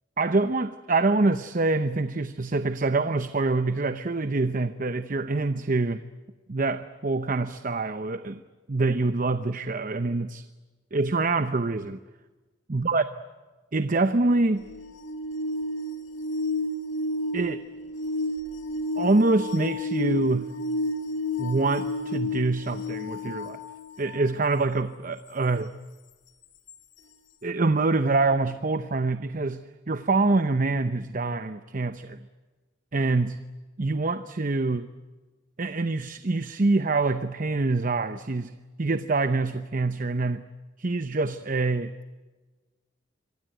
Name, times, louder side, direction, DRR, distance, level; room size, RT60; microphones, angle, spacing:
voice 1, 0.2-6.0 6.5-8.4 8.7-10.4 10.9-12.0 12.7-13.0 13.7-14.7 17.3-17.6 19.0-20.6 21.4-23.6 24.0-25.7 27.4-32.2 32.9-33.4 33.8-34.9 35.6-40.5 40.8-41.9, right 3 dB, 45° right, 11 dB, 0.8 m, -25 dB
sound 1, 14.6-24.4 26.7-26.8, left 2 dB, 80° left, 2.2 m, -31 dB
26.5 x 23.5 x 9.2 m, 1.3 s
head